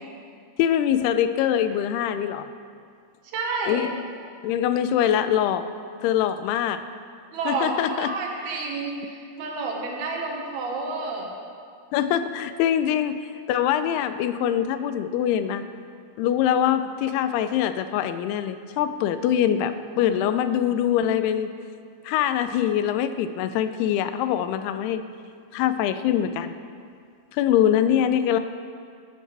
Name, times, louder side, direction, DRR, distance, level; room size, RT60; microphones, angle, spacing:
voice 1, 0.6-2.5 3.7-3.9 4.4-5.7 6.0-6.8 7.5-8.1 11.9-15.6 16.2-21.5 22.0-25.1 25.5-26.5 27.3-28.4, left 10 dB, 85° left, 11 dB, 2.5 m, -23 dB
voice 2, 3.3-3.8 7.3-11.3, right 3 dB, 75° right, -1 dB, 3.3 m, -30 dB
16.5 x 11.0 x 3.4 m, 2.2 s
omnidirectional pair, 4.7 m